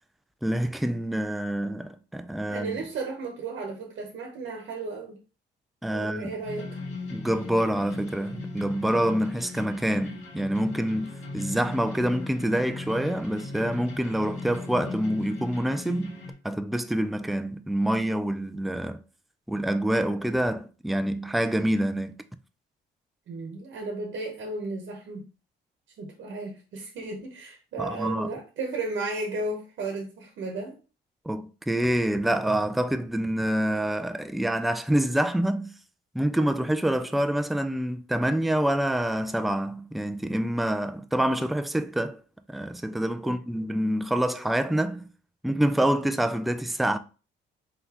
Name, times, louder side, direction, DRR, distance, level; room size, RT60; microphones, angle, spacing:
voice 1, 0.4-2.8 5.8-6.4 7.1-16.2 16.4-19.0 19.5-22.2 27.8-28.3 31.3-35.7 36.1-42.2 42.5-45.1 45.4-47.0, right 1 dB, ahead, 0.3 m, -26 dB
voice 2, 2.5-5.2 5.9-6.8 23.3-25.3 26.0-30.8 43.2-43.4, right 3 dB, 70° right, 1.0 m, -34 dB
sound 1, 6.4-16.3, left 3 dB, 80° left, 1.8 m, -38 dB
3.9 x 3.9 x 2.9 m
cardioid pair, 90°, 20 cm